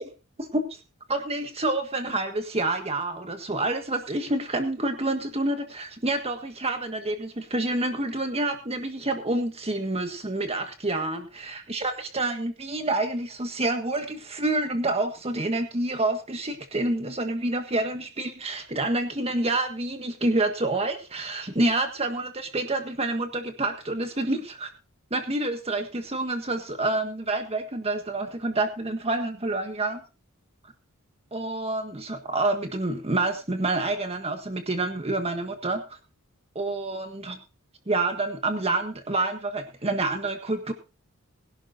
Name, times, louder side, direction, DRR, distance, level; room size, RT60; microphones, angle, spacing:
voice 1, 0.4-0.8 1.1-24.7 25.1-30.0 31.3-36.0 36.5-37.4 37.9-40.7, right 2 dB, 30° right, 6 dB, 1.6 m, -28 dB
21.5 x 12.0 x 2.7 m, 0.30 s
head